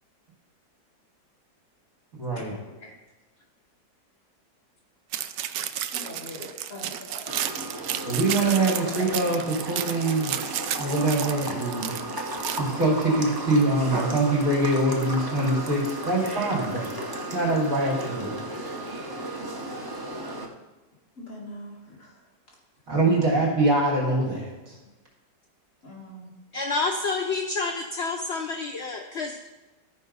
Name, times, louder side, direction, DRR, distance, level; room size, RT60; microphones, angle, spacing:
voice 1, 2.2-2.6 8.1-10.3 10.8-11.9 12.6-16.9 17.3-18.3 22.9-24.7, right 2 dB, 50° right, -5 dB, 3.4 m, -24 dB
sound 1, 5.1-12.6, right 11 dB, 85° right, 1.3 m, -32 dB
voice 2, 5.9-7.3 19.1-19.2 21.2-22.2 22.9-23.4 25.8-26.3, left 1 dB, 45° left, -4 dB, 2.2 m, -42 dB
sound 2, 7.3-20.5, right 1 dB, 30° right, 0.4 m, -34 dB
voice 3, 26.5-29.5, left 3 dB, 65° left, 3 dB, 0.6 m, -29 dB
13.5 x 4.7 x 5.4 m, 1.1 s
omnidirectional pair, 1.9 m